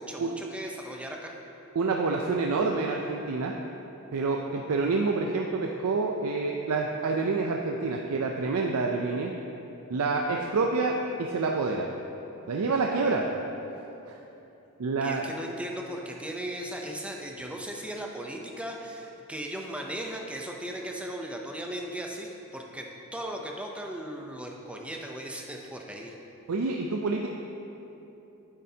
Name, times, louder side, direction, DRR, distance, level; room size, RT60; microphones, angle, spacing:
voice 1, 0.0-1.3 13.0-13.2 15.0-26.1, right 1 dB, 5° right, 1 dB, 0.6 m, -37 dB
voice 2, 1.8-3.5 4.1-9.3 9.9-11.9 12.5-13.2 14.1-14.2 14.8-15.2 26.5-27.3, right 3 dB, 75° right, 1 dB, 0.5 m, -27 dB
9.7 x 7.6 x 2.8 m, 3.0 s
head